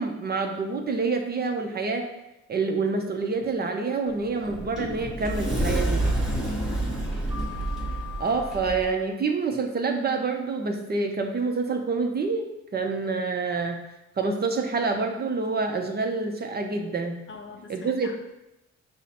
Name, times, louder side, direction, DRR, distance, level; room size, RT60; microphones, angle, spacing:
voice 1, 0.0-2.1 2.5-6.0 8.2-12.5 12.7-13.8 14.2-17.2 17.7-18.1, right 4 dB, 35° right, 4 dB, 0.6 m, -27 dB
Sliding door, 4.1-8.9, right 1 dB, ahead, 1.0 m, -28 dB
voice 2, 6.2-7.1 7.8-8.0 17.3-18.1, left 5 dB, 40° left, 4 dB, 0.5 m, -45 dB
5.3 x 2.1 x 4.2 m, 0.91 s
cardioid pair, 90°, 30 cm